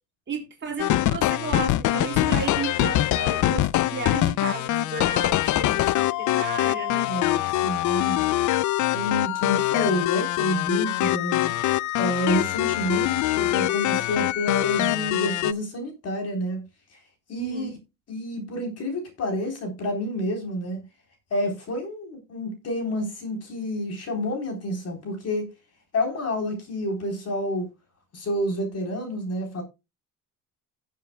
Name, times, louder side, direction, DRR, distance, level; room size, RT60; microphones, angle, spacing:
voice 1, 0.3-7.1 17.3-17.7, right 5 dB, 35° right, 4.0 m, -33 dB
sound 1, 0.8-15.5, left 15 dB, 65° left, 0.5 m, -24 dB
voice 2, 7.1-8.3 8.9-11.5 12.0-16.6 16.9-17.0 17.3-17.7 18.1-20.8 21.3-25.5 25.9-27.7 28.1-29.6, equal, 45° left, 3.7 m, -29 dB
18.0 x 7.5 x 2.2 m
cardioid pair, 145°, 33 cm